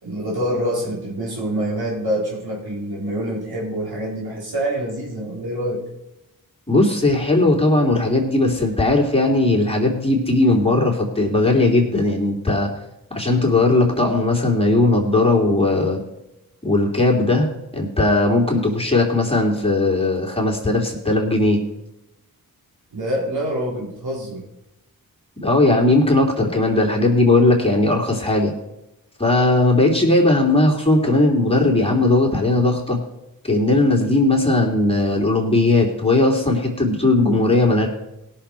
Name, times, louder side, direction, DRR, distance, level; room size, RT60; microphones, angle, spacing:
voice 1, 0.0-5.8 22.9-24.4, equal, 85° right, -4 dB, 3.9 m, -26 dB
voice 2, 6.7-12.7 13.1-16.0 16.6-17.5 17.7-21.6 25.4-28.5 29.2-33.0 33.4-37.9, left 2 dB, 15° left, -1 dB, 3.1 m, -18 dB
17.0 x 6.7 x 4.4 m, 0.91 s
cardioid pair, 40°, 37 cm